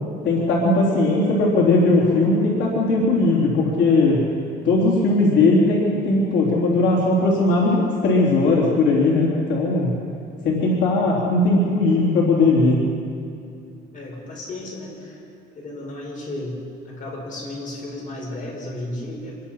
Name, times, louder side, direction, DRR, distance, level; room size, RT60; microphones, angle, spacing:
voice 1, 0.2-4.2 4.6-9.9 10.4-12.8, left 2 dB, 80° left, -3 dB, 3.7 m, -18 dB
voice 2, 13.7-15.2 15.5-16.6 16.8-19.4, left 1 dB, 45° left, -1 dB, 7.2 m, -34 dB
26.0 x 21.5 x 5.8 m, 2.5 s
cardioid pair, 140°, 19 cm